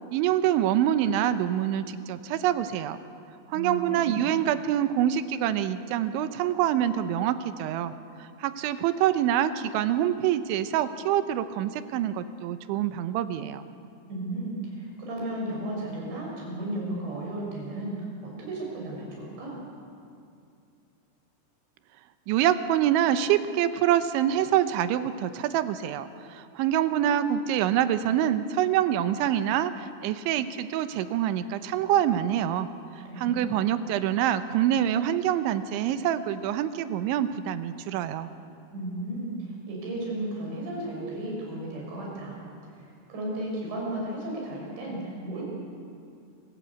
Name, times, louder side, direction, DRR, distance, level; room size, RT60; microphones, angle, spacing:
voice 1, 0.1-3.0 3.5-7.9 8.2-13.6 22.3-32.7 33.2-38.3, right 11 dB, 80° right, 11 dB, 3.1 m, -26 dB
voice 2, 3.5-4.2 14.1-17.9 18.4-19.6 33.1-33.5 38.7-42.4 42.8-45.4, right 1 dB, 65° right, -2 dB, 7.9 m, -34 dB
27.0 x 15.5 x 8.3 m, 2.5 s
omnidirectional pair, 5.5 m